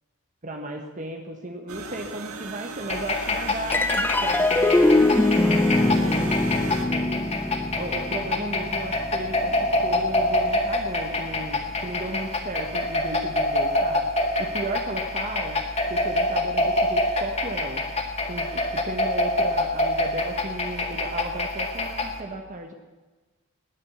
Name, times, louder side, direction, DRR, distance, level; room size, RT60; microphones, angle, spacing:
voice 1, 0.4-7.2 7.7-14.1 14.4-15.6 15.9-17.8 18.3-22.7, right 2 dB, 35° right, 3 dB, 1.2 m, -35 dB
sound 1, 1.7-6.9, right 4 dB, 85° right, 1.9 m, -37 dB
sound 2, 2.9-22.2, left 2 dB, 30° left, 1.6 m, -26 dB
sound 3, 3.7-10.4, left 2 dB, 10° left, 0.5 m, -23 dB
18.5 x 10.5 x 7.0 m, 1.3 s
head